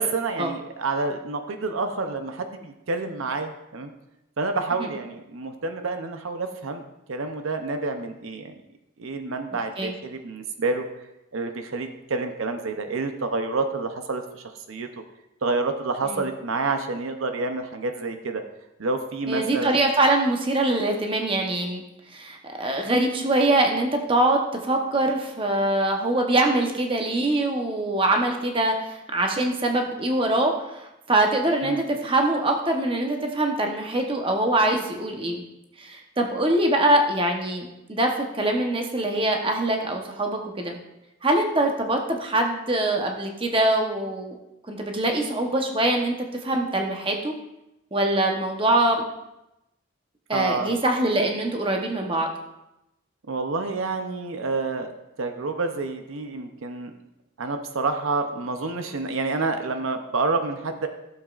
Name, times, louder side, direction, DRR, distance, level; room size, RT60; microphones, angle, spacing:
voice 1, 0.0-3.9 4.4-6.8 7.1-8.5 9.0-10.9 11.3-14.9 15.4-18.4 18.8-19.8 31.6-31.8 50.3-50.7 53.3-54.9 55.2-56.9 57.4-60.9, right 3 dB, 75° right, 6 dB, 0.7 m, -28 dB
voice 2, 19.3-21.8 22.1-35.4 35.8-40.8 41.2-44.4 44.7-46.1 46.4-47.3 47.9-49.0 50.3-52.3, right 1 dB, 25° right, 2 dB, 1.0 m, -23 dB
15.0 x 7.2 x 2.5 m, 0.91 s
head